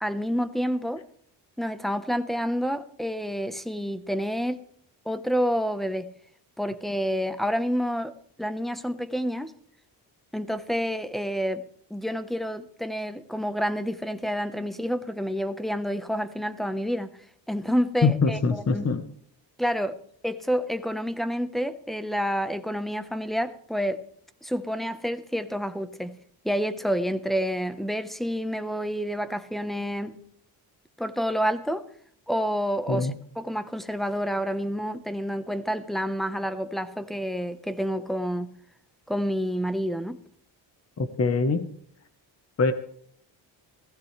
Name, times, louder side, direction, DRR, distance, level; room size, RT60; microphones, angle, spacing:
voice 1, 0.0-1.0 1.6-4.6 5.0-6.1 6.6-9.5 10.3-11.6 11.9-17.1 17.5-18.9 19.6-20.0 20.2-24.0 24.4-26.2 26.4-30.2 31.0-31.8 32.3-38.5 39.1-40.2, equal, ahead, 1.1 m, -28 dB
voice 2, 18.0-19.0 32.9-33.1 41.0-41.7 42.6-42.7, left 4 dB, 35° left, 1.3 m, -23 dB
17.0 x 15.0 x 3.4 m
cardioid pair, 100°, 45 cm